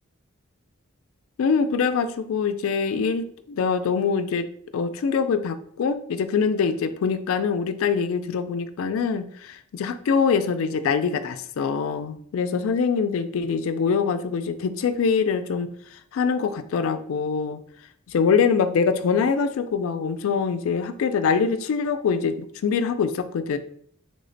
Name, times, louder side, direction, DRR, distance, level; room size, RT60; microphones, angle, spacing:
voice 1, 1.4-3.3 3.6-4.5 4.7-15.7 16.1-17.6 18.1-23.6, left 5 dB, 80° left, 10 dB, 0.3 m, -24 dB
3.2 x 2.1 x 3.8 m, 0.63 s
head